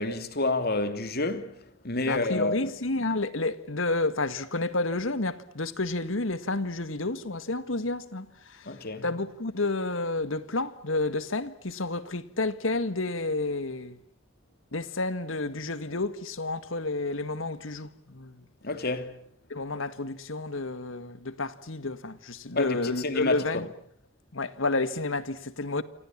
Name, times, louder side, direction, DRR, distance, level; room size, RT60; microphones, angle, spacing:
voice 1, 0.0-2.7 8.7-9.1 18.6-19.2 22.5-23.6, left 2 dB, 50° left, 3.0 m, -29 dB
voice 2, 2.1-8.7 9.0-14.0 14.7-18.4 19.5-23.7 24.3-25.8, left 2 dB, 75° left, 1.8 m, -30 dB
28.5 x 26.0 x 7.4 m
head